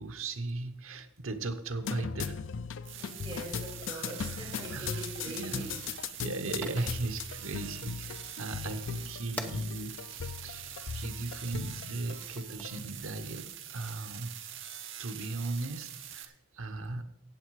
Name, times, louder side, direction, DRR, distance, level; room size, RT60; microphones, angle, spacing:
voice 1, 0.0-2.4 3.9-4.2 4.7-5.0 5.4-5.7 6.2-14.3 15.0-17.0, right 2 dB, 90° right, 9 dB, 1.0 m, -37 dB
sound 1, 1.8-12.8, left 6 dB, 65° left, 0.5 m, -39 dB
sound 2, 2.8-16.2, right 10 dB, 65° right, 1.1 m, -44 dB
voice 2, 3.0-5.8, right 1 dB, 25° right, -6 dB, 5.7 m, -43 dB
Fire, 5.0-13.3, left 1 dB, 5° left, 0.9 m, -49 dB
15.0 x 8.2 x 4.8 m, 0.83 s
head